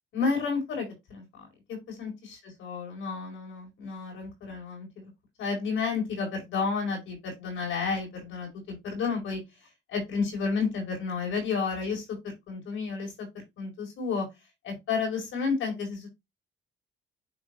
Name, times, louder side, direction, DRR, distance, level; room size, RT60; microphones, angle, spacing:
voice 1, 0.1-5.1 5.4-9.4 9.9-13.3 13.6-14.3 14.6-16.1, left 5 dB, 80° left, 1 dB, 4.2 m, -31 dB
9.9 x 3.5 x 3.1 m, 0.21 s
cardioid pair, 90°, 20 cm